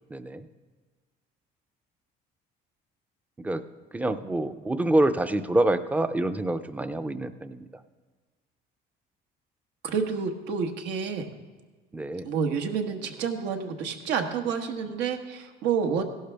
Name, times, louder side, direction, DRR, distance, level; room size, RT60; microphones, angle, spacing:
voice 1, 0.1-0.5 3.4-3.6 3.9-7.7 11.9-12.3, right 1 dB, 10° right, 10 dB, 0.5 m, -26 dB
voice 2, 9.8-11.3 12.2-16.0, right 6 dB, 85° right, 4 dB, 1.3 m, -29 dB
15.5 x 12.0 x 3.5 m, 1.4 s
cardioid pair, 140°, 18 cm